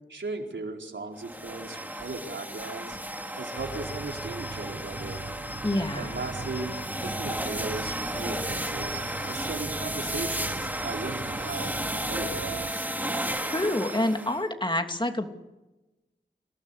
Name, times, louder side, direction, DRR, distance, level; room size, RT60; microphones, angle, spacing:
voice 1, 0.1-3.0 3.4-5.3 6.0-6.7 7.0-11.8 12.1-12.9, right 3 dB, 75° right, 2 dB, 4.5 m, -37 dB
sound 1, 1.2-14.4, right 1 dB, 10° right, 2.9 m, -33 dB
sound 2, 3.6-12.7, right 4 dB, 50° right, 1.2 m, -41 dB
voice 2, 5.6-6.2 13.4-15.3, left 1 dB, 25° left, 5 dB, 2.9 m, -27 dB
27.0 x 18.0 x 8.4 m, 1.1 s
wide cardioid pair, 55°, 19 cm